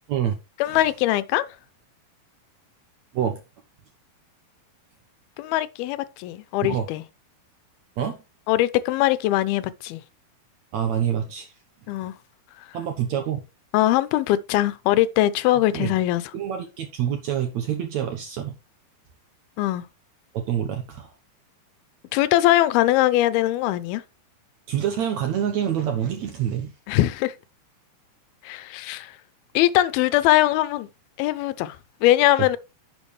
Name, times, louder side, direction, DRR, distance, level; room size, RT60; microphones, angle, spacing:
voice 1, 0.6-1.4 5.4-7.0 8.5-10.0 11.9-12.1 13.7-16.2 19.6-19.8 22.1-24.0 26.9-27.3 28.4-29.1 29.5-30.9 31.2-32.6, left 15 dB, 85° left, 2.5 m, -21 dB
voice 2, 10.7-11.5 12.7-13.4 15.7-15.9 16.3-18.6 20.3-21.1 24.7-26.7 32.4-32.5, right 9 dB, 70° right, 1.8 m, -26 dB
10.5 x 7.0 x 3.2 m
omnidirectional pair, 4.4 m